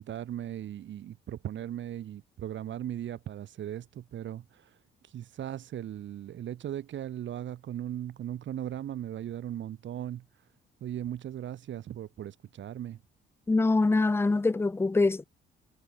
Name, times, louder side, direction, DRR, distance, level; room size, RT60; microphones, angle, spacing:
voice 1, 0.0-4.8 5.0-10.2 10.8-13.0, right 11 dB, 70° right, 3.2 m, -38 dB
voice 2, 13.5-15.2, left 3 dB, 10° left, 0.6 m, -24 dB
cardioid pair, 90°, 20 cm